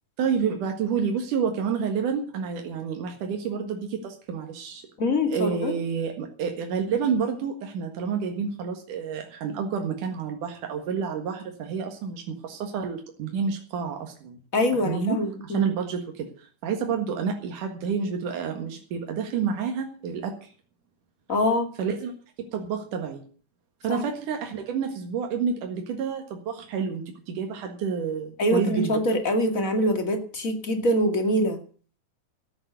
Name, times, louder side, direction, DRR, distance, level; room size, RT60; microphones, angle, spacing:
voice 1, 0.2-4.9 5.3-14.4 14.7-20.5 21.8-22.1 22.5-23.2 23.8-29.0, right 6 dB, 85° right, 3 dB, 3.3 m, -29 dB
voice 2, 5.0-5.7 14.5-15.7 21.3-21.7 23.9-24.0 28.4-31.6, left 1 dB, 30° left, 5 dB, 2.2 m, -24 dB
14.0 x 8.9 x 8.1 m, 0.43 s
omnidirectional pair, 3.6 m